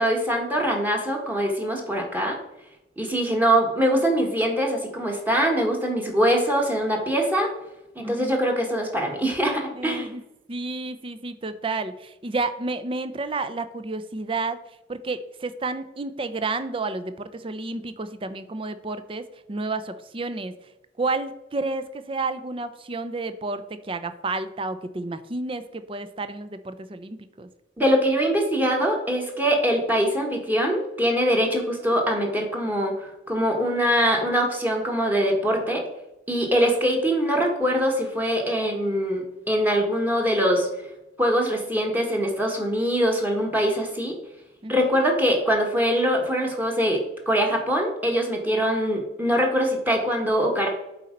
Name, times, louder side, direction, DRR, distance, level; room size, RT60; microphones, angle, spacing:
voice 1, 0.0-2.4 3.0-7.5 7.9-10.1 27.8-35.8 36.3-40.7 41.2-44.2 44.7-50.7, equal, 10° right, 0 dB, 1.4 m, -23 dB
voice 2, 8.0-8.4 9.7-10.2 10.5-14.6 14.9-20.5 21.0-27.5 44.6-45.0, right 3 dB, 30° right, 11 dB, 0.5 m, -31 dB
8.1 x 4.2 x 5.1 m, 0.91 s
head